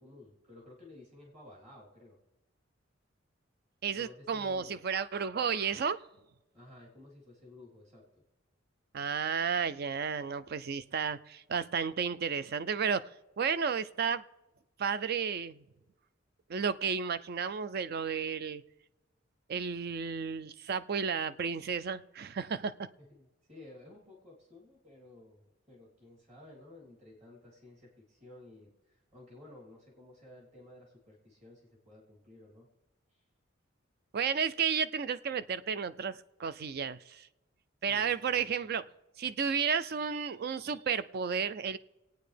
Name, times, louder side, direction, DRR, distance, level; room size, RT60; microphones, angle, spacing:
voice 1, 0.0-2.2 3.9-4.8 6.5-8.0 23.1-32.7 37.9-38.4, left 2 dB, 35° right, -4 dB, 3.2 m, -54 dB
voice 2, 3.8-6.0 8.9-13.1 13.4-14.2 14.8-15.6 16.5-18.6 19.5-22.9 34.1-37.3 37.8-38.9 39.2-41.8, right 6 dB, 55° right, 15 dB, 0.4 m, -32 dB
25.0 x 9.0 x 3.4 m, 1.0 s
head